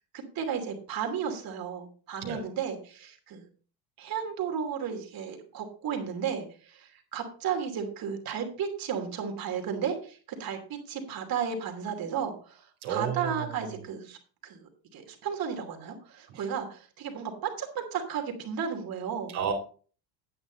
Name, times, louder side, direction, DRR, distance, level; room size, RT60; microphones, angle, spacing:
voice 1, 0.1-3.5 4.0-14.2 14.4-19.4, right 7 dB, 45° right, 4 dB, 2.8 m, -34 dB
voice 2, 12.8-13.4 16.3-16.4 19.3-19.5, right 7 dB, 75° right, -1 dB, 3.0 m, -31 dB
9.7 x 8.2 x 3.9 m, 0.41 s
supercardioid pair, 115°, 47 cm